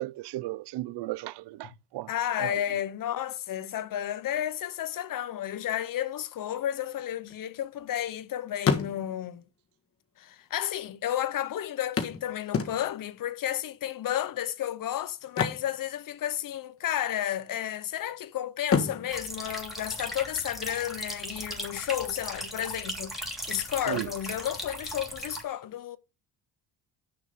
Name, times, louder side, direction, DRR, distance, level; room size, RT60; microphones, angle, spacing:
voice 1, 0.0-2.1 2.4-2.6 23.9-24.1, right 18 dB, 75° right, 0.6 m, -35 dB
voice 2, 2.1-9.4 10.2-26.0, left 11 dB, 50° left, 0.8 m, -32 dB
sound 1, 6.9-8.2 8.5-9.4 10.3-10.4 10.6-10.7 12.0-13.2 15.2-16.5 16.8-17.0 17.5-18.1 18.6-20.4 22.4-22.5 22.9-23.0, left 5 dB, 30° left, 1.5 m, -31 dB
sound 2, 19.1-25.4, equal, ahead, 2.8 m, -38 dB
6.6 x 6.1 x 6.7 m
cardioid pair, 120°, 41 cm